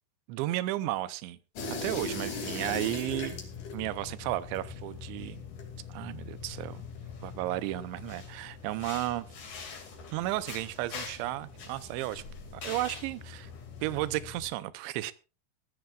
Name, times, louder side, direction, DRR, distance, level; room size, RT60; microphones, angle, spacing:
voice 1, 0.3-1.4 1.7-3.4 3.7-5.4 5.9-6.8 7.2-9.3 10.1-12.2 12.5-13.5 13.8-15.1, right 16 dB, 80° right, 2.8 m, -33 dB
sound 1, 1.6-14.5, left 4 dB, 45° left, 3.4 m, -41 dB
19.5 x 14.5 x 2.5 m
omnidirectional pair, 5.7 m